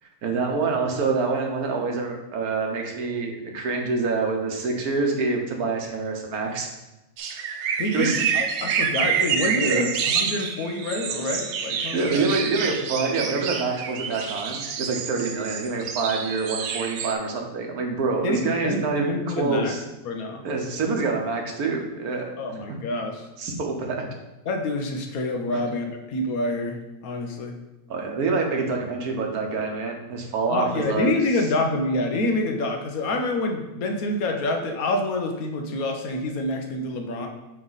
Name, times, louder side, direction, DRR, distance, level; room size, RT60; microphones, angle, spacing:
voice 1, 0.2-6.7 7.9-8.2 9.6-9.9 11.9-19.8 20.4-22.2 23.4-24.1 25.5-25.6 27.9-31.1, right 4 dB, 90° right, 2 dB, 1.5 m, -26 dB
sound 1, 7.2-17.1, right 7 dB, 65° right, 0.8 m, -28 dB
voice 2, 7.8-12.2 18.2-19.8 20.0-20.4 22.4-23.3 24.5-27.5 30.5-37.3, left 2 dB, 75° left, 3 dB, 1.3 m, -27 dB
8.8 x 3.4 x 4.0 m, 1.0 s
omnidirectional pair, 1.5 m